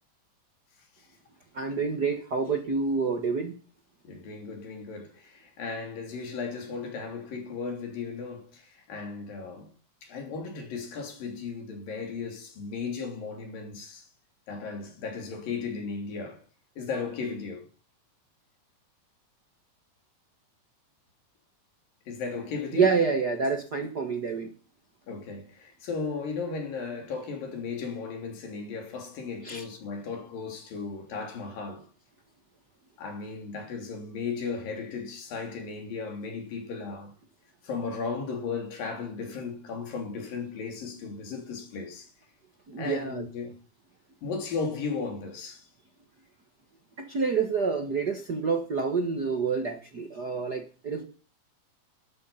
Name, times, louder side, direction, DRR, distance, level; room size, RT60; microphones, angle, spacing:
voice 1, 1.5-3.5 22.7-24.5 29.4-29.6 42.7-43.2 47.0-51.0, right 5 dB, 45° right, 1.3 m, -28 dB
voice 2, 4.0-9.7 10.0-14.1 14.5-16.4 16.8-17.7 22.1-22.9 25.1-31.9 33.0-37.1 37.6-42.1 42.8-43.5 44.2-45.7, left 4 dB, 80° left, 4.9 m, -35 dB
13.0 x 12.0 x 5.7 m
omnidirectional pair, 3.9 m